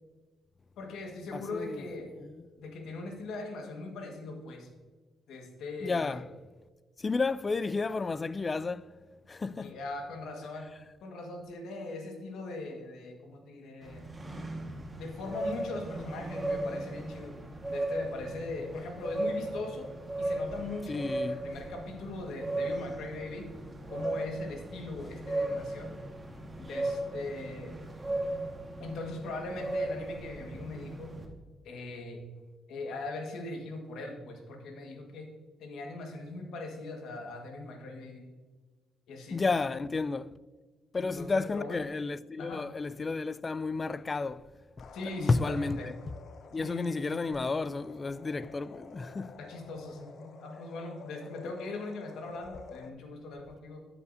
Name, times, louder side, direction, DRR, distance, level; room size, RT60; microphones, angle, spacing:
voice 1, 0.8-2.1 2.6-4.7 5.3-6.2 9.6-10.7 11.0-14.0 15.0-17.3 17.7-19.9 20.2-23.5 23.9-26.0 26.6-27.8 28.8-31.1 31.6-32.2 32.7-35.3 35.6-38.3 39.1-39.4 40.9-41.8 42.4-42.6 44.9-45.9 46.5-47.2 49.4-53.9, left 2 dB, 80° left, 1.6 m, -40 dB
voice 2, 1.3-1.8 2.2-2.4 5.8-6.2 7.0-8.9 9.3-9.8 20.9-21.4 39.3-40.3 40.9-44.5 44.8-44.9 45.2-45.9 46.5-49.4, left 3 dB, 30° left, 0.3 m, -32 dB
sound 1, 13.8-31.3, right 1 dB, 20° right, 1.6 m, -36 dB
sound 2, 44.8-52.9, left 5 dB, 60° left, 0.6 m, -50 dB
9.7 x 8.2 x 2.7 m
cardioid pair, 90°, 0 cm